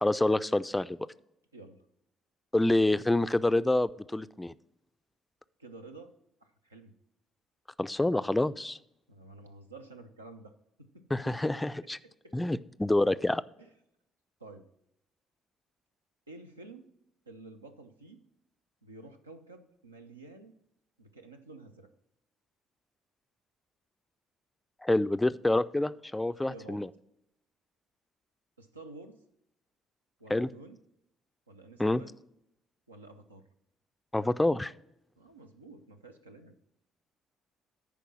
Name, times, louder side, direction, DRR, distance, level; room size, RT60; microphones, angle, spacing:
voice 1, 0.0-1.0 2.5-4.5 7.8-8.8 11.1-12.0 12.3-13.4 24.8-26.9 30.3-30.5 31.8-32.0 34.1-34.7, left 1 dB, 10° left, 15 dB, 0.3 m, -27 dB
voice 2, 1.5-1.9 5.6-6.1 6.4-6.9 9.1-12.4 13.6-13.7 14.4-14.7 16.3-16.9 17.3-18.2 18.8-20.6 21.0-21.9 26.3-26.8 28.6-29.2 30.2-30.8 31.5-32.1 32.9-33.4 35.2-36.6, right 3 dB, 85° right, 5 dB, 0.5 m, -51 dB
10.5 x 4.6 x 6.0 m, 0.80 s
figure-of-eight pair, 45°, 0 cm